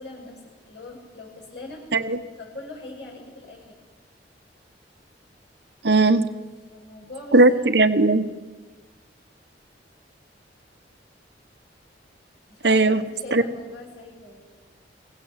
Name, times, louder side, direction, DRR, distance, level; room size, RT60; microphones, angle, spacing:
voice 1, 0.0-1.8 2.4-3.8 6.7-7.6 12.5-14.4, left 2 dB, 75° left, -2 dB, 7.9 m, -41 dB
voice 2, 5.8-6.2 7.3-8.2 12.6-13.0 13.3-13.4, right 2 dB, 65° right, 11 dB, 1.1 m, -17 dB
24.0 x 16.5 x 7.5 m, 1.3 s
head